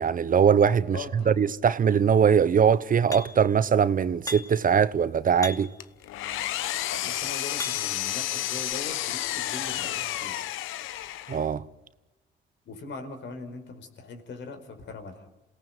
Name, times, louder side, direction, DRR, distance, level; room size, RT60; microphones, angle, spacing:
voice 1, 0.0-1.0 1.3-5.7 11.3-11.6, right 7 dB, 45° right, 0.9 m, -21 dB
voice 2, 0.9-1.3 6.9-10.4 12.6-15.2, left 3 dB, 65° left, 4.9 m, -40 dB
sound 1, 3.1-3.5 4.3-4.7 5.4-5.9 6.7-8.1 8.7-8.8, left 2 dB, 15° left, 2.7 m, -39 dB
Engine, 5.8-11.5, left 13 dB, 90° left, 1.1 m, -31 dB
28.0 x 18.0 x 9.2 m
cardioid pair, 90°, 20 cm